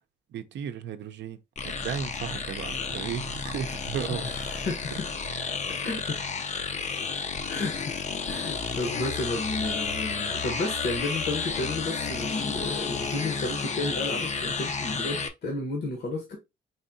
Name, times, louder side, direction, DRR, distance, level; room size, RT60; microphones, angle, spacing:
voice 1, 0.3-1.4 1.8-4.7, right 8 dB, 65° right, 0.5 m, -35 dB
sound 1, 1.6-15.3, left 5 dB, 35° left, 0.5 m, -32 dB
voice 2, 4.1-5.1 5.5-6.2 7.5-8.0 8.2-16.4, left 2 dB, 55° left, 1.0 m, -32 dB
4.1 x 2.7 x 2.6 m
cardioid pair, 90°, 20 cm